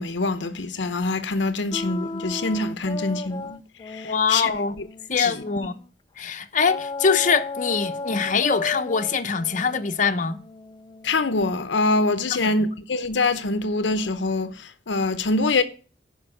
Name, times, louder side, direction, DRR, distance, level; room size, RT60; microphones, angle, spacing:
voice 1, 0.0-3.6 3.9-4.5 5.2-5.3 11.0-15.6, left 3 dB, 80° left, 0.8 m, -24 dB
sound 1, 1.7-5.9 6.6-11.4, left 3 dB, 25° left, 0.4 m, -35 dB
voice 2, 4.0-4.7 5.1-5.7 6.2-10.4 12.4-12.5, left 5 dB, 45° left, 0.9 m, -23 dB
11.0 x 5.3 x 6.5 m
head